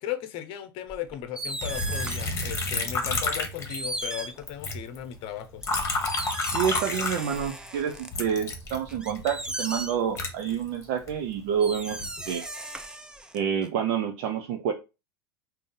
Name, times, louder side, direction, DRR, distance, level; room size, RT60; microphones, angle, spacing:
voice 1, 0.0-5.6, left 11 dB, 45° left, 0.8 m, -36 dB
sound 1, 0.9-2.4 3.2-3.3 3.7-5.0 5.6-8.1 8.5-10.2 11.2-11.3 11.6-13.7, right 1 dB, 5° right, 0.6 m, -36 dB
Liquid, 1.6-4.2 4.5-7.7 8.1-11.1 11.7-12.2, left 3 dB, 25° left, 1.2 m, -31 dB
voice 2, 6.5-12.0 12.3-12.4 13.3-14.7, right 8 dB, 50° right, 0.6 m, -28 dB
3.8 x 2.7 x 3.7 m
hypercardioid pair, 90°, 12 cm